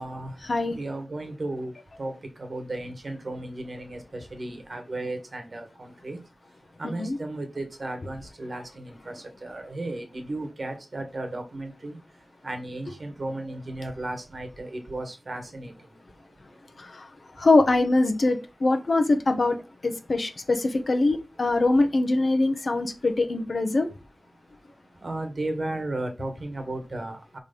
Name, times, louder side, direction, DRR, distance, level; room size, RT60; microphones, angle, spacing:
voice 1, 0.0-6.2 6.5-17.0 17.4-17.5 24.6-27.4, right 2 dB, 50° right, 1.5 m, -35 dB
voice 2, 17.4-19.6 19.8-23.9, left 2 dB, 55° left, 1.0 m, -23 dB
5.1 x 4.1 x 5.2 m
wide cardioid pair, 85°, 0 cm